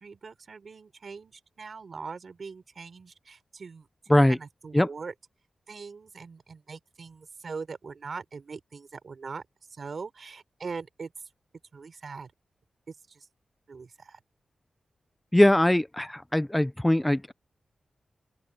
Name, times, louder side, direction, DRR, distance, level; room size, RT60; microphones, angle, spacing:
voice 1, 0.0-3.9 4.3-5.1 5.7-9.4 9.7-11.1 11.7-12.3 12.9-13.3 13.7-14.2, right 4 dB, 50° right, 4.0 m, -41 dB
voice 2, 15.3-17.3, left 1 dB, 10° left, 0.6 m, -21 dB
wide cardioid pair, 160°, 0 cm